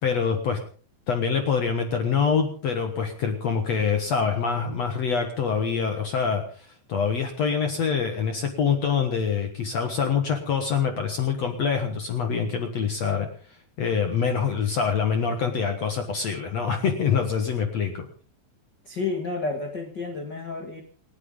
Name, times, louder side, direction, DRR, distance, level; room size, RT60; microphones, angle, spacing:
voice 1, 0.0-0.6 1.1-13.3 13.8-18.1, left 6 dB, 60° left, 5 dB, 1.9 m, -25 dB
voice 2, 18.8-20.8, left 3 dB, 45° left, 3 dB, 1.5 m, -30 dB
28.5 x 9.6 x 3.8 m, 0.42 s
omnidirectional pair, 4.8 m